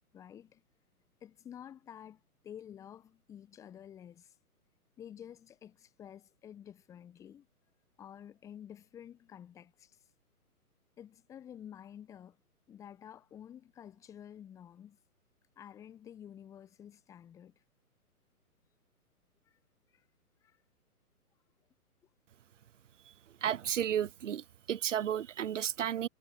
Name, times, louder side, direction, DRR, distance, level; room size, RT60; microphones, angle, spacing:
voice 1, 0.1-0.6 1.2-4.4 5.0-7.5 8.0-10.0 11.0-12.4 12.7-15.0 15.6-17.5 19.5-19.6 19.9-20.0 20.4-20.6, left 9 dB, 5° left, 0.9 m, -51 dB
voice 2, 23.4-26.1, right 10 dB, 55° right, 0.6 m, -33 dB
figure-of-eight pair, 125°, 45 cm